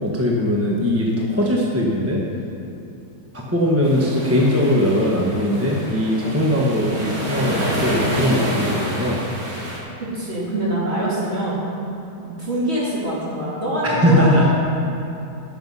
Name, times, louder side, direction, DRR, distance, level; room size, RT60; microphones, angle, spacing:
voice 1, 0.0-2.2 3.3-9.2 13.8-14.5, left 1 dB, 10° right, -3 dB, 0.9 m, -20 dB
sound 1, 3.8-9.8, equal, 60° right, 2.6 m, -27 dB
voice 2, 10.0-11.6 12.2-14.5, right 1 dB, 35° right, -7 dB, 3.0 m, -24 dB
12.5 x 7.3 x 5.6 m, 2.9 s
omnidirectional pair, 1.8 m